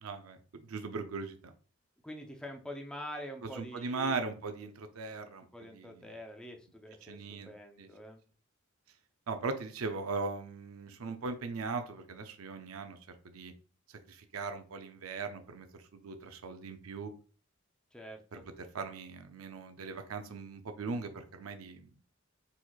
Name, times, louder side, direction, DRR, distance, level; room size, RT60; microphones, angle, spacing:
voice 1, 0.0-1.5 3.6-5.5 5.7-5.9 7.1-7.5 7.8-7.9 9.3-13.0 13.2-13.5 14.1-15.7 15.9-17.1 18.3-18.4 18.7-21.9, right 4 dB, 90° right, 7 dB, 0.6 m, -39 dB
voice 2, 2.0-4.4 5.5-8.2 17.9-18.5, equal, 5° left, 2 dB, 0.6 m, -45 dB
4.5 x 4.1 x 2.3 m, 0.40 s
head